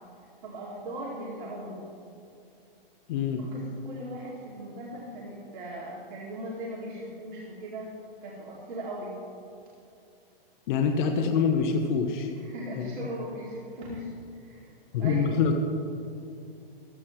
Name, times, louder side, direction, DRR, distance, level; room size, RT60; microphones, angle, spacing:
voice 1, 0.4-1.8 3.4-7.9 8.2-9.1 12.3-15.4, right 1 dB, 55° right, -5 dB, 2.6 m, -39 dB
voice 2, 3.1-3.4 10.7-12.3 14.9-15.5, left 6 dB, 55° left, 4 dB, 1.1 m, -25 dB
15.0 x 13.5 x 3.2 m, 2.6 s
hypercardioid pair, 130°, 29 cm